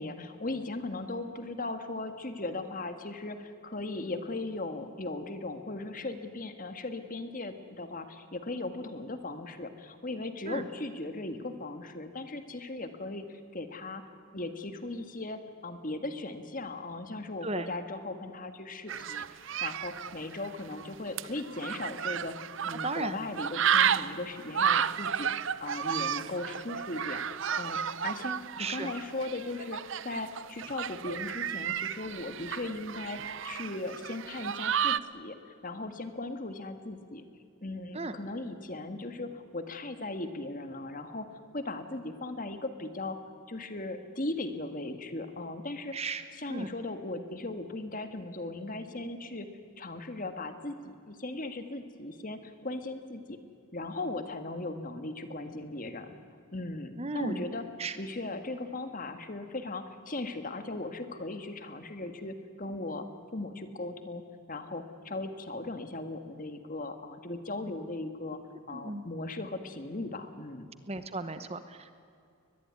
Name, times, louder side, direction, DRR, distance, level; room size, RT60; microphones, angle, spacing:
voice 1, 0.0-14.0 14.3-27.2 27.6-35.4 35.6-37.2 37.6-41.3 41.5-43.2 43.5-45.9 46.3-49.5 49.8-53.4 53.7-56.1 56.5-57.7 58.0-63.1 63.3-64.2 64.5-68.4 68.7-70.7, left 2 dB, 40° left, 8 dB, 1.7 m, -38 dB
sound 1, 18.9-23.1 23.4-35.0, right 8 dB, 60° right, 0.6 m, -32 dB
voice 2, 22.8-23.2 28.6-28.9 38.0-38.1 45.9-46.2 46.5-46.7 57.0-57.4 57.8-57.9 68.8-69.0 70.9-71.6, right 3 dB, 30° right, 10 dB, 1.0 m, -34 dB
23.0 x 20.5 x 9.6 m, 2.4 s
head